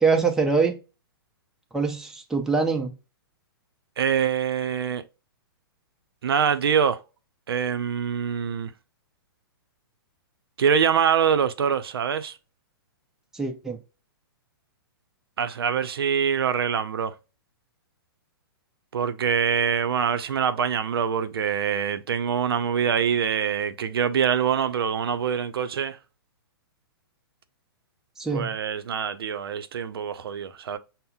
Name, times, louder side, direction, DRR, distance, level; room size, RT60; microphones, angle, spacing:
voice 1, 0.0-0.7 1.7-2.9 13.3-13.8 28.2-28.6, right 4 dB, 5° right, 0.5 m, -24 dB
voice 2, 4.0-5.0 6.2-7.0 7.5-8.7 10.6-12.3 15.4-17.1 18.9-26.0 28.3-30.8, right 7 dB, 80° right, 0.5 m, -24 dB
5.4 x 2.0 x 2.2 m
hypercardioid pair, 130°, 12 cm